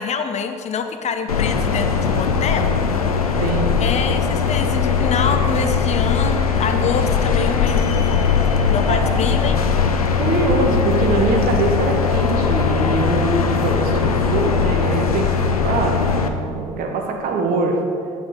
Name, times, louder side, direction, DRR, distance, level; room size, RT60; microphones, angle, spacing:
voice 1, 0.0-2.8 3.0-3.5 3.8-8.3 8.7-9.6, left 6 dB, 40° left, 7 dB, 0.6 m, -26 dB
sound 1, 1.3-16.3, left 6 dB, 85° left, 0.4 m, -19 dB
voice 2, 3.4-3.7 8.9-9.2 10.2-17.8, right 3 dB, 50° right, 2 dB, 1.2 m, -23 dB
8.0 x 7.7 x 4.0 m, 2.5 s
figure-of-eight pair, 55°, 18 cm